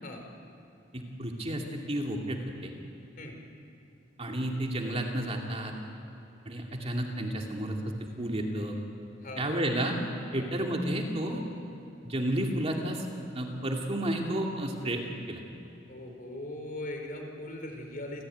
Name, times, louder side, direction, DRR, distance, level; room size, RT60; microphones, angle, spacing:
voice 1, 0.9-2.7 4.2-5.7 6.5-8.8 9.4-10.0 10.3-11.4 12.0-13.1 13.3-15.0 15.3-15.4, right 1 dB, 30° right, 1 dB, 2.5 m, -31 dB
voice 2, 9.2-9.7 10.4-10.5 15.9-18.2, left 1 dB, 50° left, 3 dB, 4.2 m, -40 dB
28.0 x 15.0 x 9.3 m, 2.8 s
head